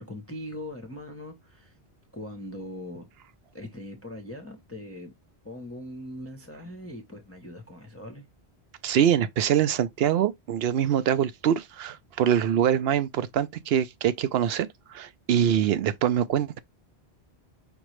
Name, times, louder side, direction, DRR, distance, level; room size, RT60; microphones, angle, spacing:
voice 1, 0.0-1.8 2.1-3.1 3.5-5.1 5.4-8.3, left 1 dB, 15° left, 0.7 m, -40 dB
voice 2, 8.8-16.6, right 9 dB, 70° right, 0.8 m, -24 dB
5.2 x 3.0 x 3.1 m
omnidirectional pair, 1.1 m